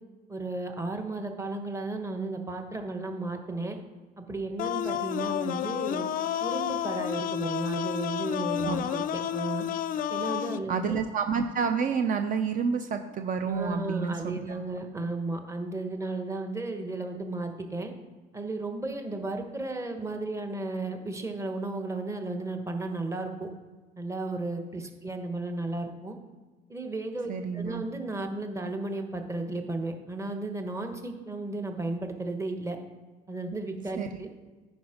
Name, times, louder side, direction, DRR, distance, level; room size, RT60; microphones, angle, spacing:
voice 1, 0.3-3.8 4.2-6.1 6.4-9.6 10.1-11.0 13.5-17.9 18.3-23.5 24.0-26.2 26.7-32.8 33.3-34.3, right 2 dB, 15° right, 5 dB, 1.2 m, -34 dB
sound 1, 4.6-10.6, left 10 dB, 55° left, 0.4 m, -30 dB
voice 2, 10.7-14.6 27.3-27.8 34.0-34.1, right 6 dB, 55° right, 8 dB, 0.6 m, -29 dB
10.0 x 5.2 x 5.0 m, 1.3 s
cardioid pair, 110°, 17 cm